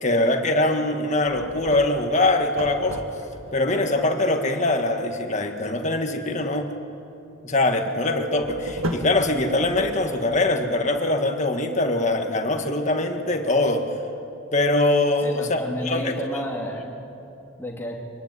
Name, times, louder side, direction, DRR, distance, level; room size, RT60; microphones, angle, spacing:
voice 1, 0.0-3.1 3.5-6.7 7.4-13.9 14.5-16.1, left 2 dB, 35° left, 5 dB, 1.7 m, -23 dB
sound 1, 1.2-3.6 8.1-10.4, right 1 dB, 80° right, 1.9 m, -34 dB
voice 2, 15.2-16.9 17.6-18.0, equal, 10° left, -1 dB, 2.8 m, -31 dB
25.5 x 17.5 x 9.6 m, 2.9 s
head